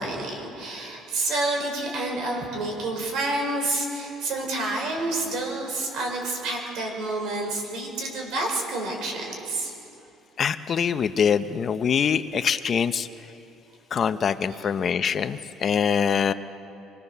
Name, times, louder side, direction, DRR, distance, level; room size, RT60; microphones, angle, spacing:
voice 1, 0.0-9.7 15.9-16.0, right 2 dB, 70° right, 1 dB, 5.4 m, -29 dB
voice 2, 10.4-13.1 13.9-16.3, left 7 dB, 35° left, 11 dB, 0.7 m, -24 dB
25.5 x 20.5 x 6.8 m, 2.8 s
cardioid pair, 135°, 0 cm